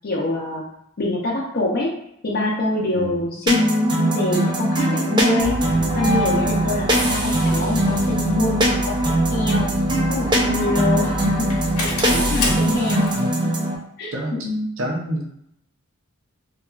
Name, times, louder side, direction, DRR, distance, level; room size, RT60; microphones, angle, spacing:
voice 1, 0.0-0.6 1.0-1.9 2.2-5.5 5.9-9.7 10.1-13.1 14.0-14.7, left 2 dB, 45° left, -4 dB, 0.5 m, -24 dB
sound 1, 3.5-13.8, right 1 dB, 20° right, 0.3 m, -21 dB
Engine starting, 5.4-13.3, equal, 90° left, 0.7 m, -28 dB
voice 2, 14.1-14.5 14.8-15.4, right 1 dB, 65° right, -1 dB, 0.6 m, -28 dB
2.8 x 2.3 x 2.3 m, 0.74 s
head